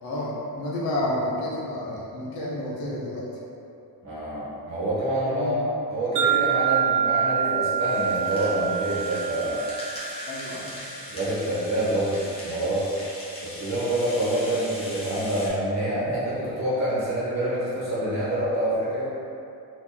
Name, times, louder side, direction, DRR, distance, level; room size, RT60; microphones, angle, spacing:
voice 1, 0.0-3.3 5.3-5.7 10.3-10.8, left 1 dB, 65° left, -5 dB, 0.8 m, -30 dB
voice 2, 4.0-9.6 11.1-12.8 13.4-19.1, right 1 dB, 40° right, -9 dB, 1.1 m, -26 dB
Wind chime, 6.2-10.4, right 8 dB, 90° right, 0.7 m, -26 dB
Rattle (instrument), 7.8-15.5, left 1 dB, 15° left, 0.7 m, -40 dB
3.0 x 2.6 x 3.7 m, 2.6 s
cardioid pair, 170°, 40 cm